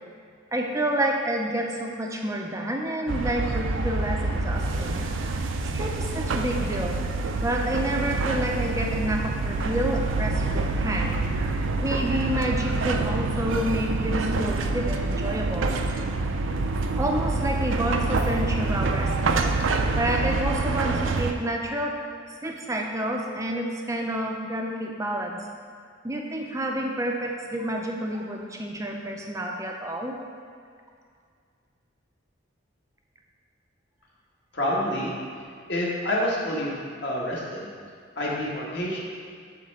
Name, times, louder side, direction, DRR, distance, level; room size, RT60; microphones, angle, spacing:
voice 1, 0.5-5.1 5.7-7.0 7.4-11.2 11.8-15.8 17.0-19.6 19.9-21.9 22.4-25.4 26.0-30.2, right 1 dB, 15° right, 1 dB, 0.5 m, -29 dB
sound 1, 3.1-21.3, right 3 dB, 75° right, 0.5 m, -26 dB
voice 2, 34.5-35.2 35.7-37.7 38.1-39.0, left 1 dB, 55° left, -5 dB, 1.5 m, -28 dB
8.1 x 3.2 x 6.4 m, 2.2 s
head